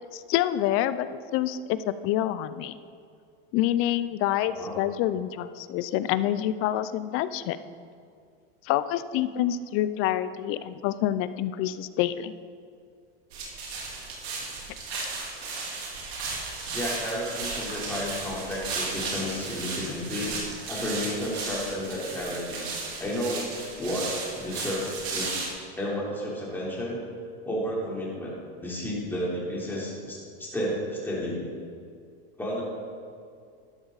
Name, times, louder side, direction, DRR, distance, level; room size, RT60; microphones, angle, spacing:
voice 1, 0.1-1.1 1.3-2.8 3.5-7.6 8.6-12.3, left 12 dB, 45° left, 14 dB, 0.6 m, -27 dB
voice 2, 4.4-4.7 16.7-20.3 20.7-22.6 23.0-23.4 23.8-25.3 25.8-27.0 27.4-28.3 28.6-31.5 32.4-32.6, equal, 5° left, -6 dB, 3.6 m, -32 dB
sound 1, 13.3-25.5, right 4 dB, 85° right, 3.6 m, -35 dB
12.0 x 12.0 x 4.1 m, 2.3 s
supercardioid pair, 135°, 31 cm